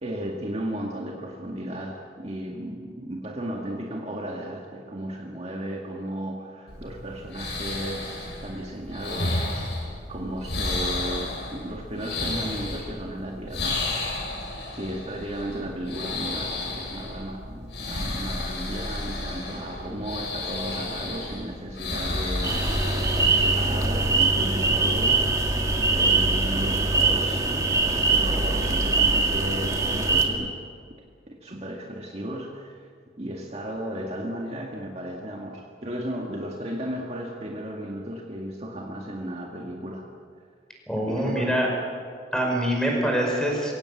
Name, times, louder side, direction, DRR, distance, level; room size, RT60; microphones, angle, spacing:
voice 1, 0.0-13.8 14.7-25.3 25.9-30.6 31.3-32.9 33.2-40.1 41.0-41.6, right 1 dB, 35° right, 0 dB, 1.9 m, -35 dB
sound 1, 6.7-24.2, left 2 dB, 75° left, 7.4 m, -32 dB
sound 2, 22.4-30.3, right 3 dB, 20° right, 2.1 m, -22 dB
voice 2, 40.9-41.7 42.3-43.7, equal, 5° left, 0 dB, 5.4 m, -24 dB
23.5 x 17.5 x 8.5 m, 2.1 s
head